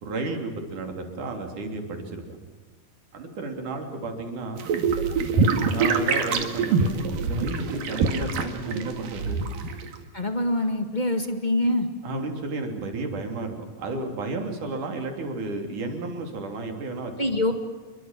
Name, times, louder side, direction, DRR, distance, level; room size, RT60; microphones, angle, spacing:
voice 1, 0.0-2.4 3.1-4.6 5.2-9.4 12.0-17.1, right 2 dB, 65° right, 4 dB, 4.8 m, -32 dB
sound 1, 4.6-10.0, right 4 dB, 85° right, 3.9 m, -25 dB
voice 2, 10.1-11.9 17.2-17.5, left 1 dB, 20° left, 6 dB, 1.3 m, -24 dB
28.5 x 23.5 x 7.6 m, 1.3 s
omnidirectional pair, 3.9 m